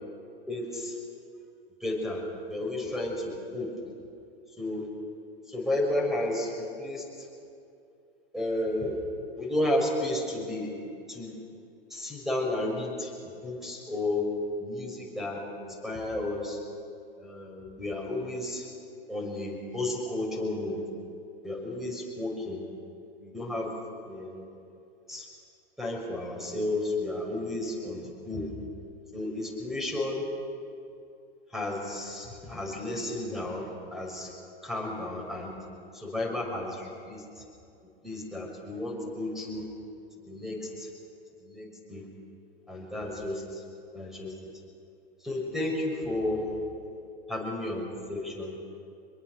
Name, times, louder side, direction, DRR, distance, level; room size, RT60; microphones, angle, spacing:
voice 1, 0.5-0.9 1.8-2.2 2.5-3.7 4.6-4.9 5.5-7.0 8.3-9.0 9.4-10.7 11.1-11.3 11.9-13.1 13.4-14.3 14.6-16.6 17.2-18.6 19.1-20.8 21.4-22.6 23.2-23.7 24.0-24.4 25.1-25.3 25.8-28.5 29.1-30.2 31.5-34.3 34.6-35.5 35.9-37.2 38.0-39.6 40.2-40.9 41.4-42.0 42.7-43.6 43.9-44.3 45.2-46.4 47.3-47.8 48.1-48.6, left 1 dB, ahead, 0 dB, 6.3 m, -32 dB
25.5 x 22.0 x 6.7 m, 2.5 s
hypercardioid pair, 100°, 31 cm